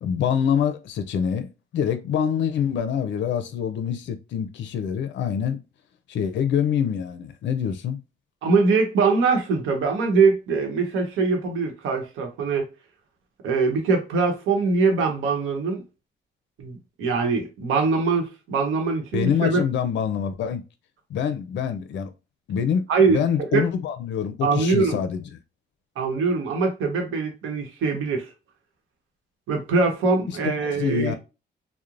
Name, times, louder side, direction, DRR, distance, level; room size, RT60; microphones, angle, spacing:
voice 1, 0.0-1.5 1.7-5.6 6.1-8.0 19.1-20.6 21.1-22.1 22.5-25.2 30.3-30.4 30.6-31.2, left 8 dB, 65° left, 0.5 m, -25 dB
voice 2, 8.4-12.7 13.4-15.8 16.6-19.6 22.9-23.2 23.5-23.7 24.4-25.0 26.0-28.3 29.5-31.1, right 4 dB, 85° right, 0.9 m, -22 dB
3.0 x 2.1 x 2.5 m
cardioid pair, 90°, 20 cm